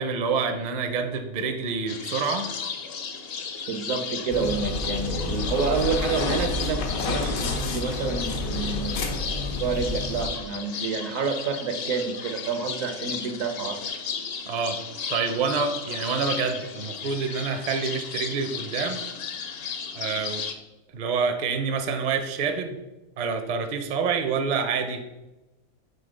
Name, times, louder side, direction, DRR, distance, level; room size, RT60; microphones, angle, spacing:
voice 1, 0.0-2.5 14.5-14.8 15.1-19.0 19.9-20.4 20.9-22.8 23.2-25.0, right 5 dB, 45° right, 6 dB, 0.6 m, -27 dB
sound 1, 1.9-20.6, left 6 dB, 55° left, 0.8 m, -35 dB
voice 2, 3.7-13.8, right 5 dB, 75° right, 6 dB, 1.2 m, -29 dB
sound 2, 4.3-10.3, left 3 dB, 85° left, 1.4 m, -29 dB
7.0 x 3.7 x 5.1 m, 1.0 s
omnidirectional pair, 1.4 m